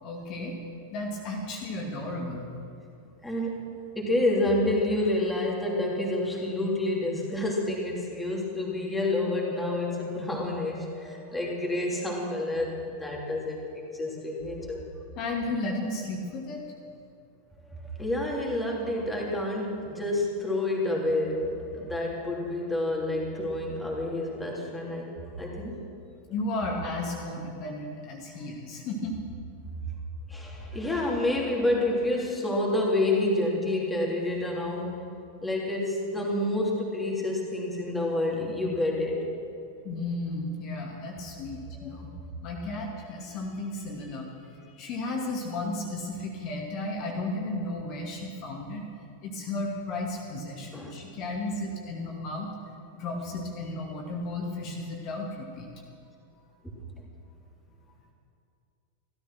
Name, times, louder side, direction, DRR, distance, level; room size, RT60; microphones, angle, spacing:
voice 1, 0.0-0.6 0.9-2.5 15.2-16.6 26.3-29.2 39.8-42.1 42.4-48.8 49.2-52.5 52.9-55.7, left 2 dB, 40° left, 0 dB, 2.4 m, -34 dB
voice 2, 3.2-14.8 17.8-25.9 30.3-35.1 35.4-39.3 41.8-41.9 50.7-50.9 57.0-57.1, left 1 dB, 10° left, -2 dB, 3.3 m, -29 dB
16.0 x 13.5 x 6.1 m, 2.5 s
figure-of-eight pair, 90°, 0 cm